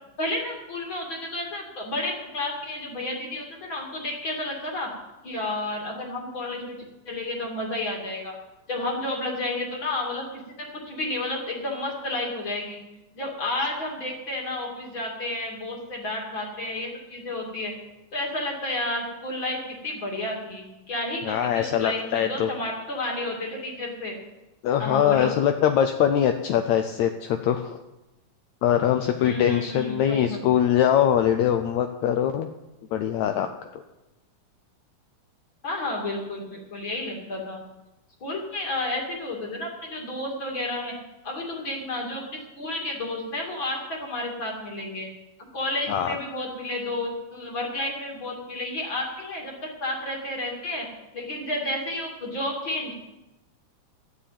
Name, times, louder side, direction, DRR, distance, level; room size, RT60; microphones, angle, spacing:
voice 1, 0.2-4.9 5.2-6.8 7.1-8.3 8.7-12.8 13.1-17.7 18.1-24.2 24.8-25.3 29.2-30.4 35.6-37.6 38.2-40.9 41.2-45.1 45.4-50.9 51.1-52.9, left 2 dB, 40° left, 0 dB, 2.9 m, -31 dB
voice 2, 21.2-22.5 24.6-27.8 28.6-32.5 32.9-33.8 45.9-46.2, left 9 dB, 75° left, 7 dB, 1.8 m, -22 dB
13.0 x 7.1 x 9.0 m, 1.0 s
omnidirectional pair, 3.7 m